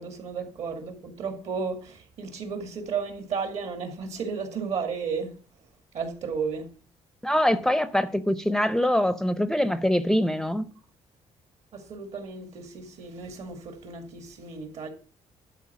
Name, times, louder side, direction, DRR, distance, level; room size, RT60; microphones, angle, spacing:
voice 1, 0.0-5.3 5.9-6.7 11.7-14.9, right 5 dB, 65° right, 2.0 m, -33 dB
voice 2, 7.2-10.7, left 1 dB, 5° left, 0.5 m, -24 dB
11.5 x 4.5 x 5.9 m
cardioid pair, 130°, 12 cm